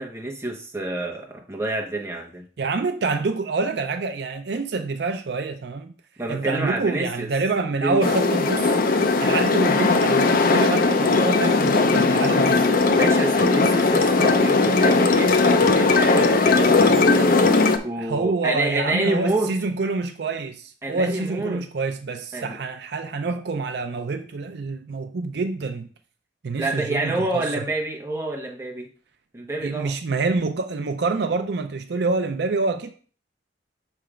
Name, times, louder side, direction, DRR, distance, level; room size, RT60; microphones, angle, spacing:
voice 1, 0.0-2.4 6.2-7.3 7.8-8.0 13.0-19.5 20.8-21.6 22.3-22.6 26.6-28.9 29.3-29.9, right 2 dB, 15° right, 1.0 m, -28 dB
voice 2, 2.6-5.9 6.3-8.8 9.2-12.7 15.6-15.9 17.0-17.1 18.0-25.9 26.4-27.6 29.6-32.9, right 3 dB, 65° right, 0.5 m, -27 dB
sound 1, 8.0-17.8, left 3 dB, 50° left, 0.5 m, -18 dB
6.7 x 3.3 x 4.9 m
head